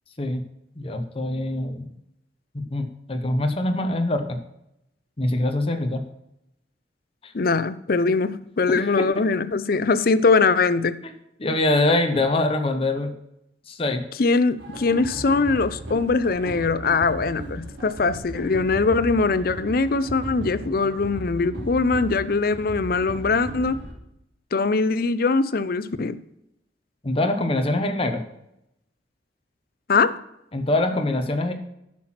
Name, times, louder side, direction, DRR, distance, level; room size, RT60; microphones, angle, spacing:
voice 1, 0.8-1.9 2.5-4.4 5.2-6.0 7.2-7.3 8.7-9.1 11.4-13.1 13.7-14.0 27.0-28.2 30.5-31.5, left 2 dB, 35° left, 5 dB, 1.0 m, -24 dB
voice 2, 7.3-11.0 14.2-23.8 24.5-26.2 29.9-30.2, left 4 dB, 55° left, 15 dB, 0.6 m, -22 dB
sound 1, 14.6-23.9, right 1 dB, 90° right, 2.9 m, -36 dB
10.5 x 6.0 x 5.8 m, 0.82 s
head